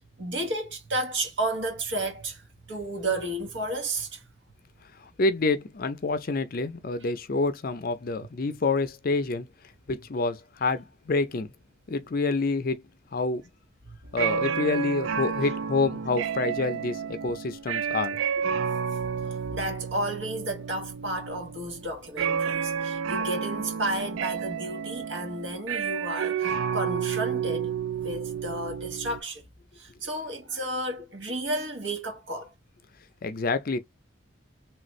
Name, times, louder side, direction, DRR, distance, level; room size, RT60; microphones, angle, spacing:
voice 1, 0.0-2.4 2.7-4.2 13.9-14.0 19.5-27.7 28.0-29.4 29.8-32.5, right 1 dB, 65° right, 1.2 m, -32 dB
voice 2, 5.0-9.5 9.9-11.5 11.9-12.8 13.1-13.4 14.1-18.2 33.2-33.8, left 3 dB, 45° left, 0.5 m, -27 dB
sound 1, 14.1-29.2, right 7 dB, 85° right, 0.4 m, -31 dB
3.2 x 2.5 x 3.1 m
head